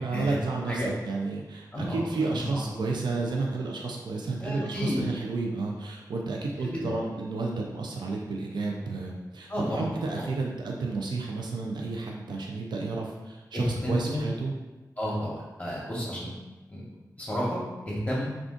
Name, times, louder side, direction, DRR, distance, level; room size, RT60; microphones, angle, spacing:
voice 1, 0.0-14.5, right 3 dB, 85° right, -1 dB, 0.4 m, -31 dB
voice 2, 1.7-2.6 4.4-5.0 6.6-6.9 9.5-10.2 13.5-14.3 15.0-16.4 16.7-16.8 17.2-18.3, equal, 20° left, -6 dB, 0.9 m, -31 dB
2.4 x 2.4 x 3.6 m, 1.1 s
cardioid pair, 40°, 7 cm